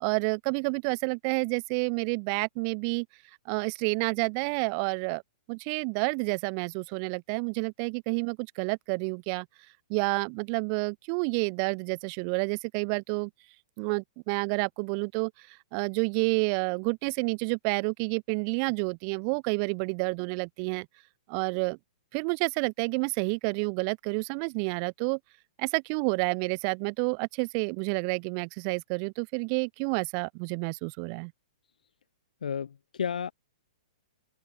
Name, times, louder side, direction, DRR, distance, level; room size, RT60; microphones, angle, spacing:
voice 1, 0.0-3.1 3.5-5.2 5.5-9.5 9.9-13.3 13.8-20.9 21.3-21.8 22.1-25.2 25.6-31.3, right 40 dB or more, 30° right, 0.3 m, -29 dB
voice 2, 32.4-33.3, left 7 dB, 90° left, 0.5 m, -32 dB
open air
hypercardioid pair, 155°, 4 cm